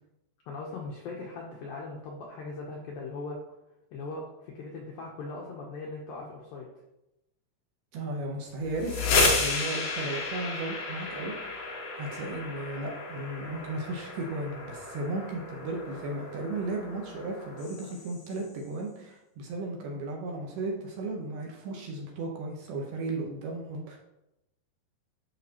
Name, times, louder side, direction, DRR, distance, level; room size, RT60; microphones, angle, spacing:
voice 1, 0.5-3.4 3.9-6.7, left 3 dB, 80° left, -1 dB, 2.1 m, -39 dB
voice 2, 7.9-11.7 11.9-24.0, right 2 dB, 75° right, 0 dB, 2.6 m, -35 dB
sound 1, 8.6-18.4, left 3 dB, 60° left, 3.0 m, -32 dB
11.0 x 5.7 x 2.9 m, 0.90 s
omnidirectional pair, 5.3 m